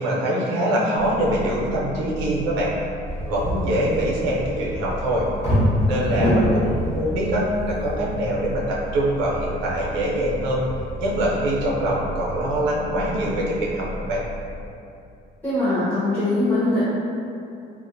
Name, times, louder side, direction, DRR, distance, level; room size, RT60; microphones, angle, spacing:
voice 1, 0.0-2.7 3.3-5.3 5.9-10.6 11.0-14.2, right 1 dB, 90° right, -4 dB, 0.6 m, -24 dB
sound 1, 1.0-14.7, equal, 75° left, 1.0 m, -35 dB
sound 2, 3.1-11.7, equal, 35° left, 1.1 m, -27 dB
voice 2, 15.4-16.9, left 2 dB, 10° left, -14 dB, 0.8 m, -21 dB
2.4 x 2.1 x 2.5 m, 2.6 s
cardioid pair, 115°, 19 cm